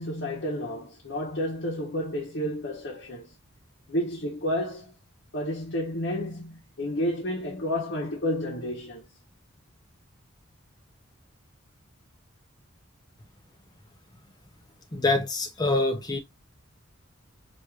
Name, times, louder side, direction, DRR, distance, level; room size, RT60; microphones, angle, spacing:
voice 1, 0.0-3.3 3.9-4.9 5.3-9.0, equal, 55° left, 1.0 m, -31 dB
voice 2, 14.9-16.2, left 2 dB, 20° left, 0.7 m, -25 dB
4.6 x 2.6 x 2.3 m
head